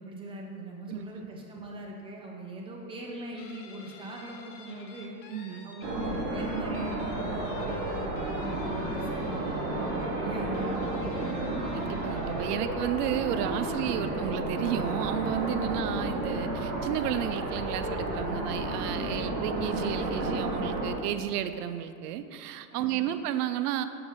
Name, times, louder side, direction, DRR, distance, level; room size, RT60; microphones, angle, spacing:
voice 1, 0.0-5.2 5.6-11.6 22.7-23.1, right 1 dB, 10° right, -1 dB, 0.6 m, -41 dB
voice 2, 0.9-1.3 5.3-5.7 11.7-23.9, right 11 dB, 75° right, 11 dB, 0.6 m, -32 dB
Guitar, 3.4-12.6, left 4 dB, 30° left, 0.6 m, -51 dB
sound 1, 5.8-20.9, right 2 dB, 35° right, 1.3 m, -32 dB
6.8 x 5.3 x 3.6 m, 2.6 s
supercardioid pair, 140°, 48 cm